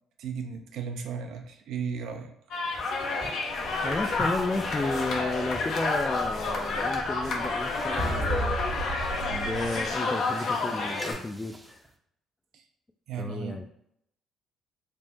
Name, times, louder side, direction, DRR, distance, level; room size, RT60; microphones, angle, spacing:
voice 1, 0.2-2.3 12.5-12.6 13.1-13.6, right 6 dB, 70° right, 5 dB, 0.5 m, -35 dB
sound 1, 2.5-11.1, left 3 dB, 60° left, 0.6 m, -30 dB
sound 2, 2.6-11.9, right 1 dB, 15° right, 0.6 m, -47 dB
sound 3, 3.5-10.0, right 2 dB, 50° right, 1.0 m, -37 dB
voice 2, 3.8-8.6 9.3-11.8 13.2-13.6, left 2 dB, 20° left, 4 dB, 0.3 m, -33 dB
3.5 x 2.0 x 4.1 m, 0.74 s
hypercardioid pair, 55°, 0 cm